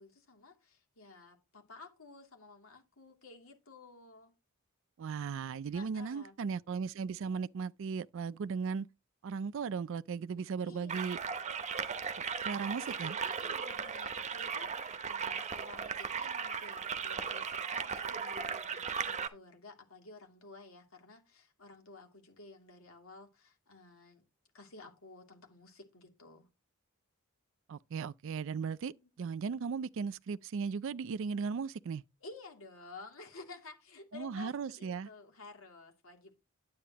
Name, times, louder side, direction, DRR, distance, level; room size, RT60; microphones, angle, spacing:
voice 1, 0.0-4.3 5.7-6.3 10.6-11.2 13.2-24.2 24.5-26.5 28.8-28.9 32.2-36.3, left 3 dB, 75° left, 2.7 m, -53 dB
voice 2, 5.0-8.9 9.2-11.2 12.4-13.2 27.7-32.0 34.1-35.1, right 5 dB, 60° right, 0.4 m, -37 dB
sound 1, 10.9-19.3, right 6 dB, 35° right, 0.9 m, -37 dB
10.0 x 8.5 x 2.9 m
head